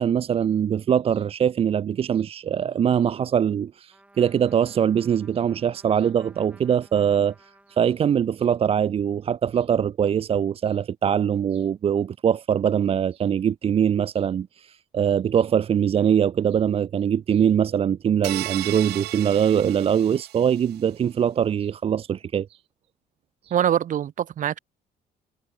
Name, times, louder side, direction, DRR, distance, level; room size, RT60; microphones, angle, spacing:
voice 1, 0.0-7.3 7.7-22.6 23.4-23.5, right 8 dB, 35° right, 0.5 m, -22 dB
Trumpet, 3.9-8.5, right 1 dB, 10° right, 6.3 m, -56 dB
sound 1, 18.2-20.7, right 17 dB, 75° right, 0.9 m, -35 dB
voice 2, 23.5-24.6, right 10 dB, 50° right, 1.3 m, -23 dB
cardioid pair, 110°, 17 cm